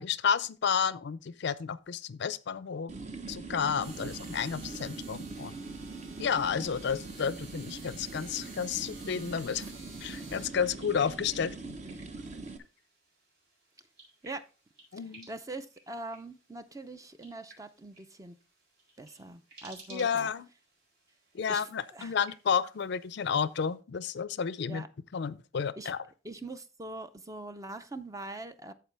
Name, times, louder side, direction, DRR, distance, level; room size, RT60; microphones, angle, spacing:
voice 1, 0.0-2.9 3.3-5.6 6.2-9.6 10.0-11.7 14.9-15.3 19.9-20.5 21.3-24.9 25.1-26.1, left 7 dB, 55° left, 0.4 m, -31 dB
sound 1, 2.9-12.6, right 3 dB, 35° right, 0.9 m, -42 dB
sound 2, 3.8-10.5, right 3 dB, 85° right, 2.5 m, -51 dB
sound 3, 10.7-23.8, right 2 dB, 50° right, 4.6 m, -57 dB
voice 2, 15.3-18.3 19.0-20.3 21.5-21.6 21.9-22.1 24.7-24.9 25.8-25.9 26.2-28.7, right 2 dB, 15° right, 0.5 m, -42 dB
13.5 x 4.7 x 3.3 m
head